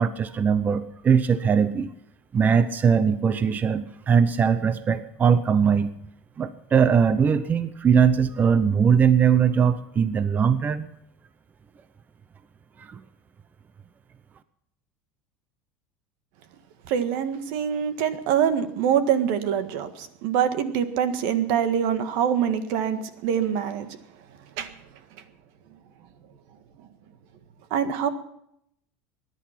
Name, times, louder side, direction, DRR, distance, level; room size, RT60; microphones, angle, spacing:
voice 1, 0.0-1.9 2.3-5.9 6.4-10.9 12.8-13.0, right 7 dB, 25° right, 13 dB, 0.7 m, -21 dB
voice 2, 16.9-24.0 24.6-24.7 27.7-28.1, right 8 dB, 70° right, 10 dB, 1.7 m, -24 dB
20.0 x 11.0 x 5.9 m, 0.75 s
supercardioid pair, 125°, 7 cm